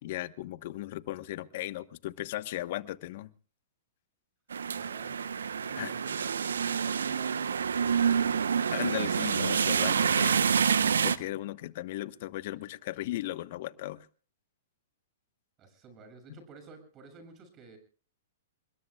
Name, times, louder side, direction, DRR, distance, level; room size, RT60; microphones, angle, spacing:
voice 1, 0.0-3.3 5.8-5.9 8.7-10.4 11.0-14.1, left 15 dB, 55° left, 1.1 m, -36 dB
sound 1, 4.5-11.2, right 7 dB, 85° right, 0.9 m, -27 dB
voice 2, 4.7-5.1 5.6-8.5 15.6-17.8, right 4 dB, 30° right, 7.3 m, -52 dB
29.0 x 21.0 x 2.3 m
hypercardioid pair, 125°, 0 cm